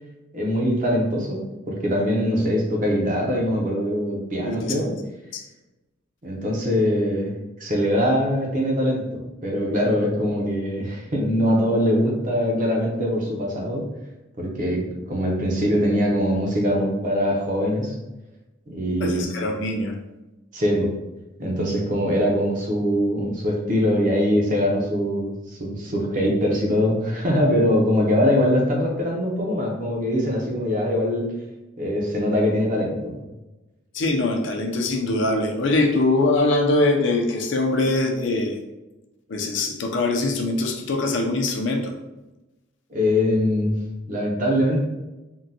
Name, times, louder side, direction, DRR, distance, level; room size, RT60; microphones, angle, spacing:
voice 1, 0.3-1.4 1.7-4.9 6.2-7.3 7.6-13.8 14.4-17.9 18.7-19.3 20.5-20.9 21.4-31.2 31.8-33.2 42.9-43.8 44.1-44.8, equal, 40° right, -1 dB, 0.6 m, -22 dB
voice 2, 4.6-5.0 5.3-5.4 19.0-20.0 33.9-38.6 39.3-41.9, left 2 dB, 65° left, 2 dB, 0.4 m, -22 dB
3.7 x 2.2 x 2.7 m, 1.0 s
head